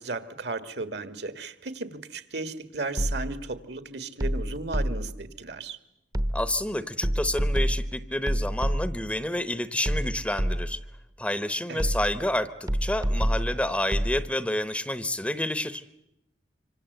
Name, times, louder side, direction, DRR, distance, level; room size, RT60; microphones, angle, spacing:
voice 1, 0.0-5.8 11.7-11.9, right 3 dB, 65° right, 11 dB, 1.8 m, -35 dB
sound 1, 3.0-3.5 4.2-5.2 6.1-6.7 7.0-9.1 9.8-10.9 11.8-12.3 12.7-14.2, equal, 20° right, 0.9 m, -27 dB
voice 2, 6.3-10.8 11.2-15.8, left 1 dB, 5° left, 13 dB, 0.9 m, -29 dB
26.0 x 25.5 x 8.0 m, 0.86 s
head